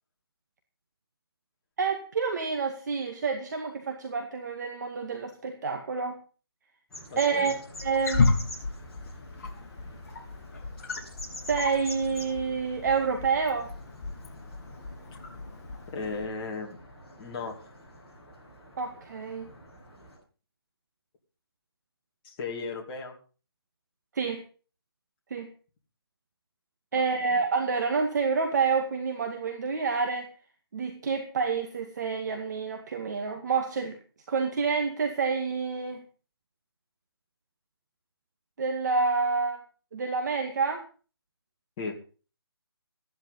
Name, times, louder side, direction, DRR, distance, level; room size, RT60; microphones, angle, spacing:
voice 1, 1.8-6.2 7.2-8.3 11.5-13.7 18.8-19.5 24.1-24.4 25.3-25.5 26.9-30.3 30.7-34.0 34.3-36.0 38.6-39.6 39.9-40.8, right 5 dB, 45° right, 4 dB, 2.1 m, -28 dB
sound 1, 6.9-20.2, left 1 dB, 5° left, 7.2 m, -47 dB
voice 2, 7.1-7.5 15.9-16.8 17.2-17.6 22.2-23.1 26.9-27.4 41.8-41.9, left 4 dB, 20° left, -1 dB, 2.8 m, -36 dB
Wild animals, 7.7-16.3, left 3 dB, 40° left, 3.1 m, -33 dB
15.0 x 11.0 x 5.6 m, 0.38 s
hypercardioid pair, 165°, 13 cm